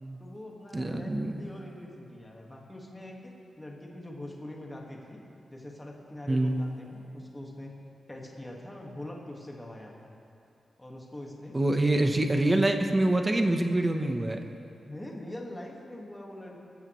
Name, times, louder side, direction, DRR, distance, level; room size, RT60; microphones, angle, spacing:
voice 1, 0.2-5.2 5.5-7.8 8.1-10.1 10.8-11.6 14.8-16.6, left 1 dB, 10° left, -1 dB, 1.6 m, -43 dB
voice 2, 0.7-1.4 6.3-6.6 11.5-14.4, right 1 dB, 20° right, 5 dB, 0.9 m, -25 dB
19.5 x 14.5 x 3.1 m, 2.6 s
wide cardioid pair, 165°, 0 cm